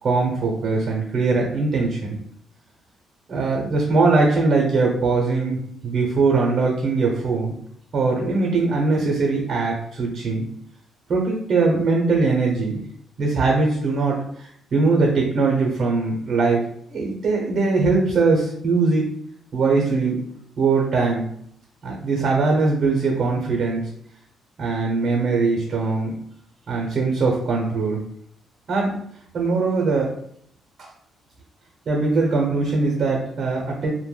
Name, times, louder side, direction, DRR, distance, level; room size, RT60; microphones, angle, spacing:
voice 1, 0.0-2.2 3.3-7.5 7.9-10.4 11.1-12.8 13.2-14.2 14.7-16.6 16.9-19.1 19.5-20.2 20.6-21.3 21.8-23.9 24.6-26.1 26.7-28.0 28.7-29.0 29.3-30.1 30.8-30.9 31.9-33.9, right 3 dB, 55° right, -1 dB, 0.7 m, -21 dB
2.1 x 2.1 x 3.2 m, 0.68 s
cardioid pair, 90°, 0 cm